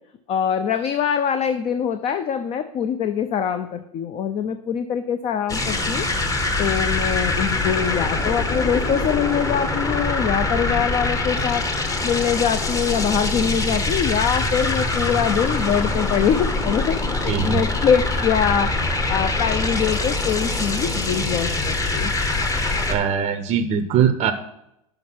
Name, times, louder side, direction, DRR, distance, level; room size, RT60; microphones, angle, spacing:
voice 1, 0.3-6.1 6.6-11.6 12.0-22.1, left 8 dB, 35° left, 10 dB, 0.5 m, -23 dB
sound 1, 5.5-23.0, left 2 dB, 20° left, 0.9 m, -24 dB
voice 2, 17.2-17.6 22.9-24.3, right 8 dB, 40° right, 9 dB, 0.6 m, -21 dB
5.9 x 5.3 x 5.9 m, 0.81 s
hypercardioid pair, 105°, 18 cm